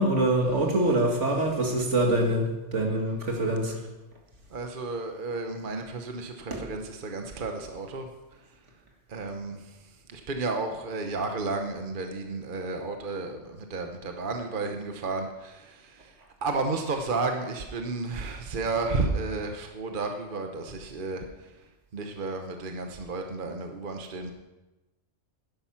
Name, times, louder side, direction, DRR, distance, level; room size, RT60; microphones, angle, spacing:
voice 1, 0.0-3.8 6.5-6.6, right 1 dB, 70° right, 1 dB, 2.3 m, -25 dB
voice 2, 4.5-8.1 9.1-9.8 10.1-16.1 16.4-21.5 21.9-24.3, right 3 dB, 45° right, 4 dB, 1.1 m, -32 dB
12.0 x 10.5 x 5.8 m, 1.1 s
omnidirectional pair, 1.3 m